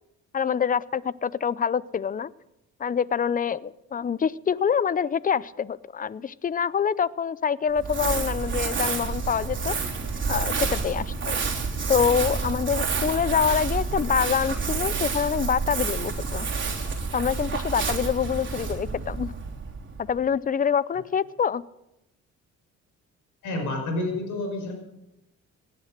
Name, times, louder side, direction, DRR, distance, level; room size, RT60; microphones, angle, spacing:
voice 1, 0.3-2.3 2.8-9.7 10.3-11.4 11.9-16.5 17.1-19.3 20.0-21.6, left 7 dB, 30° left, 20 dB, 0.6 m, -26 dB
Crumpling crinkling, 7.7-20.2, right 4 dB, 40° right, 3.3 m, -29 dB
voice 2, 23.4-24.7, left 2 dB, 85° left, 3 dB, 5.9 m, -29 dB
17.5 x 10.5 x 6.6 m, 0.90 s
cardioid pair, 90°, 30 cm